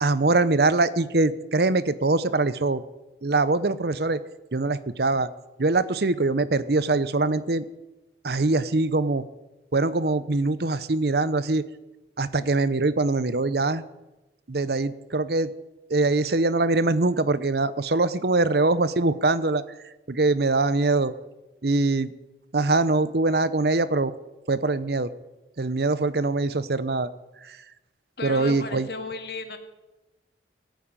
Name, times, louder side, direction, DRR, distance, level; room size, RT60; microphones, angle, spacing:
voice 1, 0.0-2.8 3.2-4.2 4.5-5.3 5.6-7.6 8.2-9.2 9.7-11.6 12.2-13.8 14.5-15.5 15.9-19.6 20.1-21.1 21.6-22.1 22.5-24.1 24.5-25.1 25.6-27.1 27.5-27.6 28.2-28.9, right 3 dB, 60° right, 15 dB, 0.8 m, -23 dB
voice 2, 28.2-29.6, left 3 dB, 60° left, 6 dB, 1.9 m, -34 dB
17.5 x 9.1 x 8.9 m, 1.0 s
head